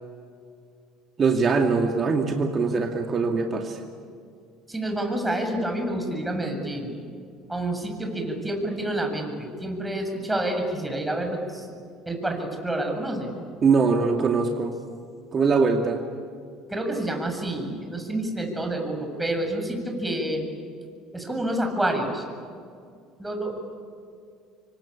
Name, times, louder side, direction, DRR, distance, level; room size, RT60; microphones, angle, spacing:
voice 1, 1.2-3.8 13.6-14.8 15.3-16.0, right 4 dB, 40° right, 3 dB, 2.4 m, -22 dB
voice 2, 4.7-6.9 7.5-11.7 12.1-13.3 16.7-20.5 21.1-22.2 23.2-23.7, right 1 dB, 10° right, 3 dB, 7.5 m, -28 dB
27.5 x 24.5 x 8.8 m, 2.3 s
hypercardioid pair, 65°, 0 cm